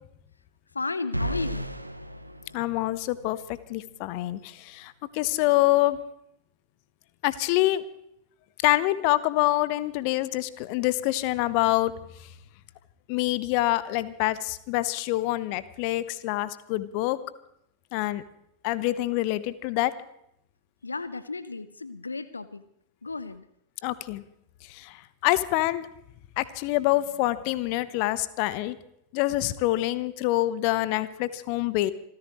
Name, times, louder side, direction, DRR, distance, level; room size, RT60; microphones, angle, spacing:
voice 1, 0.7-1.6 20.8-22.6 23.0-23.4, left 3 dB, 80° left, 14 dB, 0.7 m, -33 dB
sound 1, 1.1-3.3, equal, 90° right, 1.1 m, -33 dB
voice 2, 2.5-6.0 7.2-7.8 8.6-11.9 13.1-17.2 17.9-18.2 18.6-19.9 23.8-24.2 24.7-25.9 26.4-28.8 29.1-31.9, left 17 dB, 45° left, 16 dB, 0.9 m, -26 dB
27.5 x 14.5 x 3.1 m, 0.77 s
figure-of-eight pair, 90°, 0 cm